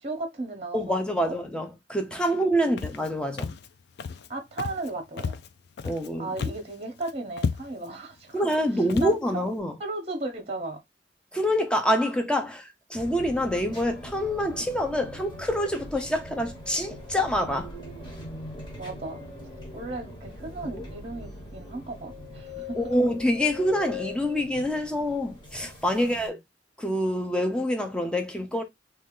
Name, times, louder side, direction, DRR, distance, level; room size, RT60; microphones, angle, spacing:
voice 1, 0.0-1.3 2.6-2.8 4.3-5.4 6.2-8.5 9.0-9.4 9.8-10.8 18.7-19.2 19.7-22.9 26.0-26.4, right 2 dB, 35° right, 0.9 m, -36 dB
voice 2, 0.7-3.6 5.8-6.3 8.3-9.8 11.3-17.7 22.7-26.4 26.8-28.6, equal, 5° left, 0.7 m, -26 dB
Walk footsteps, 2.8-3.1 3.4-3.7 4.0-4.3 4.6-4.9 5.2-6.1 6.4-6.7 7.0-7.1 7.4-7.9 8.4-8.6 8.9-9.2, left 5 dB, 65° left, 0.4 m, -32 dB
sound 1, 12.9-26.3, left 2 dB, 25° left, 1.4 m, -41 dB
3.2 x 2.8 x 3.7 m
head